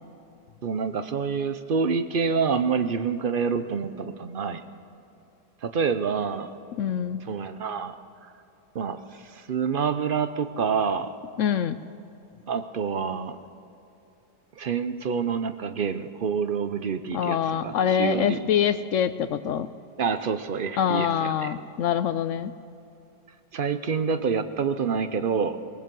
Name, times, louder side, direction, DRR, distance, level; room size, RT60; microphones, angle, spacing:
voice 1, 0.6-4.6 5.6-6.5 7.2-8.0 8.2-8.3 8.7-11.1 12.5-13.4 14.6-18.4 20.0-21.5 23.5-25.6, right 6 dB, 60° right, 10 dB, 0.5 m, -27 dB
voice 2, 6.8-7.2 11.4-11.8 17.1-19.7 20.8-22.5, left 8 dB, 70° left, 13 dB, 0.7 m, -25 dB
19.5 x 18.5 x 7.6 m, 2.9 s
omnidirectional pair, 1.8 m